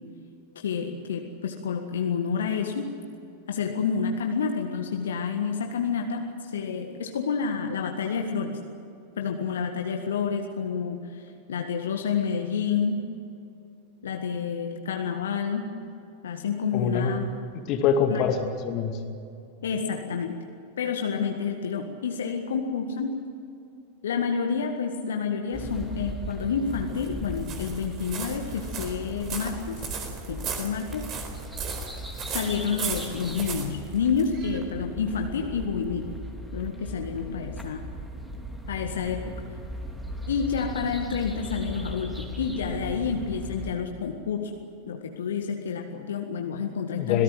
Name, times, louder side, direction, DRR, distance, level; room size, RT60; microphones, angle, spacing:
voice 1, 0.6-2.9 3.5-8.6 9.2-13.0 14.0-15.7 16.2-17.3 18.1-18.3 19.6-20.3 20.8-23.2 24.0-29.8 30.3-31.1 32.3-36.1 36.5-37.9 38.7-39.3 40.3-44.5 44.9-47.2, left 6 dB, 65° left, 3 dB, 1.8 m, -29 dB
voice 2, 16.7-17.2 17.7-19.0 47.0-47.2, left 7 dB, 40° left, 6 dB, 2.5 m, -24 dB
sound 1, 25.5-43.7, equal, 5° right, 3.2 m, -38 dB
sound 2, 26.4-34.6, right 5 dB, 30° right, 4.2 m, -37 dB
26.5 x 18.0 x 7.9 m, 2.6 s
figure-of-eight pair, 90°, 0 cm